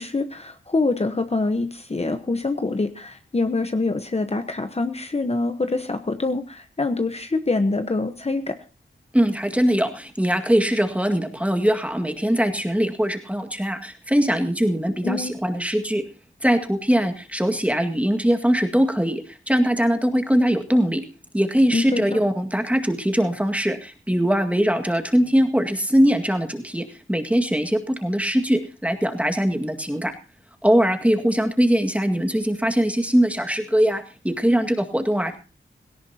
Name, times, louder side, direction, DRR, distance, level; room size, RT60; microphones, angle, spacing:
voice 1, 0.0-8.6 15.0-15.3 21.7-22.2, left 3 dB, 30° left, 8 dB, 1.1 m, -25 dB
voice 2, 9.1-16.0 16.4-21.0 21.3-30.1 30.6-35.4, equal, 5° right, 5 dB, 1.9 m, -21 dB
17.5 x 17.0 x 2.9 m, 0.34 s
wide cardioid pair, 70°, 20 cm